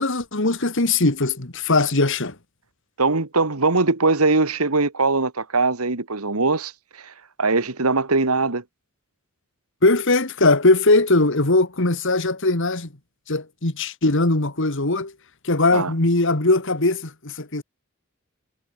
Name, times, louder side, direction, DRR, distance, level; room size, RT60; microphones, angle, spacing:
voice 1, 0.0-2.4 9.8-12.9 13.3-15.1 15.4-17.6, left 2 dB, 60° left, 2.3 m, -20 dB
voice 2, 3.0-6.7 7.0-7.1 7.4-8.6 15.7-15.9, right 3 dB, 90° right, 2.0 m, -21 dB
head